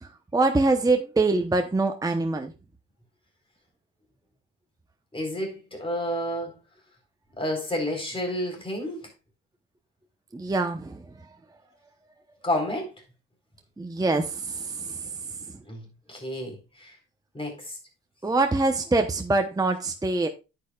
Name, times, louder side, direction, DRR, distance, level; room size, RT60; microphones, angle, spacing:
voice 1, 0.0-2.5 10.3-11.3 13.8-15.6 18.2-20.3, right 3 dB, 10° right, 0.9 m, -25 dB
voice 2, 5.1-6.6 7.4-9.1 12.4-12.9 15.7-17.0 17.3-17.8, left 1 dB, 20° left, 4.1 m, -30 dB
9.9 x 8.8 x 2.4 m
cardioid pair, 90°, 30 cm